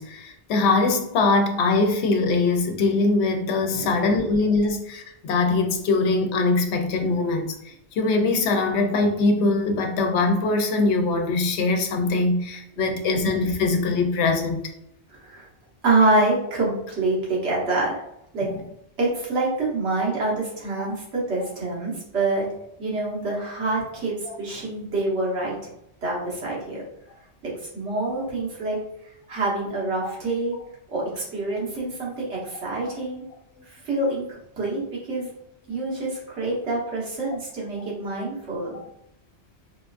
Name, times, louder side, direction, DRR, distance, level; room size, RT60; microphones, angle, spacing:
voice 1, 0.0-7.5 8.0-14.6 18.4-18.5 30.0-30.1, left 3 dB, 80° left, 0.9 m, -22 dB
voice 2, 15.8-18.0 18.3-18.5 19.0-22.4 22.8-25.5 26.0-26.8 27.7-28.8 29.3-30.5 30.9-33.2 33.8-34.2 34.6-34.8 35.1-35.3 35.7-38.7, right 2 dB, 85° right, 1.4 m, -26 dB
4.2 x 2.3 x 2.4 m
omnidirectional pair, 1.1 m